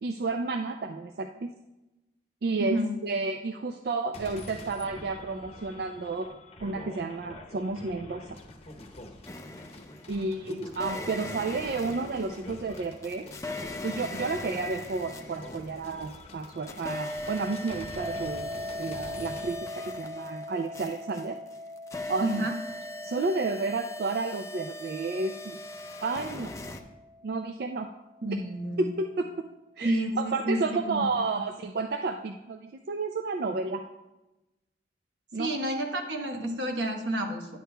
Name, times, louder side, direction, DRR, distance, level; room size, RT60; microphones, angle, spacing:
voice 1, 0.0-1.5 2.4-2.8 3.0-6.3 6.6-8.3 10.1-13.3 13.8-19.7 20.0-21.4 22.1-22.5 23.0-25.6 26.0-26.5 27.2-27.9 28.8-29.3 29.8-33.8 35.3-35.5, right 3 dB, 60° right, 5 dB, 0.4 m, -31 dB
voice 2, 2.6-2.9 22.2-22.5 28.2-28.9 29.8-31.1 31.3-31.4 35.3-37.6, right 1 dB, 85° right, 3 dB, 1.1 m, -30 dB
sound 1, 4.1-19.6, left 1 dB, 35° left, 0.8 m, -45 dB
sound 2, 9.3-10.2 10.7-16.2 16.4-26.8, left 1 dB, 15° left, 0.4 m, -40 dB
sound 3, 18.0-28.9, left 1 dB, ahead, 1.2 m, -42 dB
10.0 x 8.3 x 2.2 m, 1.0 s
head